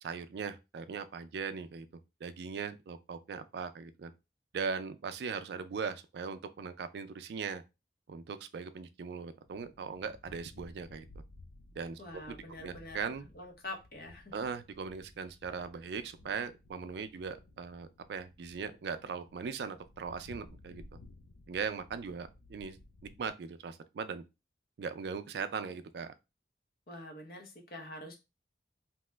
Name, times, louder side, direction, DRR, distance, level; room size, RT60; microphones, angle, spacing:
voice 1, 0.0-1.9 2.2-4.1 4.5-7.6 8.1-11.1 11.8-12.4 12.6-13.3 14.3-20.8 21.5-22.8 23.2-24.2 24.8-26.1, right 5 dB, 70° right, 0.3 m, -39 dB
sound 1, 9.4-23.3, left 2 dB, 85° left, 0.4 m, -57 dB
voice 2, 12.0-13.0 13.3-14.5 26.9-28.2, left 1 dB, 55° left, 0.8 m, -45 dB
2.9 x 2.1 x 3.2 m
head